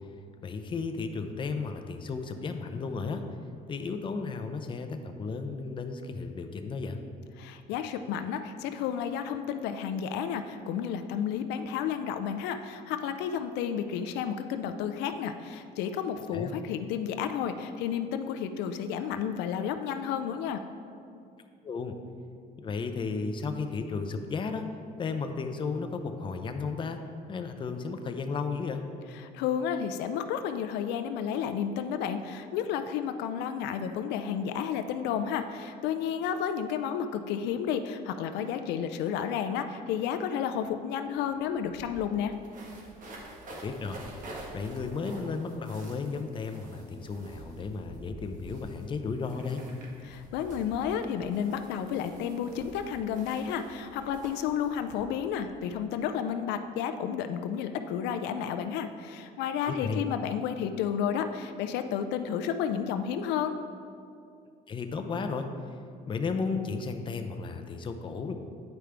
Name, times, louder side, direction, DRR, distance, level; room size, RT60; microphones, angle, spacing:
voice 1, 0.4-3.2 3.7-7.0 16.3-16.5 21.6-22.0 22.6-24.7 25.0-27.0 27.3-28.8 43.5-44.0 44.5-49.6 59.7-60.0 64.7-65.5 66.1-68.3, left 4 dB, 30° left, 6 dB, 0.5 m, -34 dB
voice 2, 7.4-20.6 29.2-42.3 50.1-63.6, left 8 dB, 90° left, 9 dB, 0.4 m, -31 dB
sound 1, 41.0-41.1 41.3-55.7, right 1 dB, 50° right, 1.3 m, -48 dB
9.2 x 5.0 x 3.4 m, 2.5 s
cardioid pair, 110°, 17 cm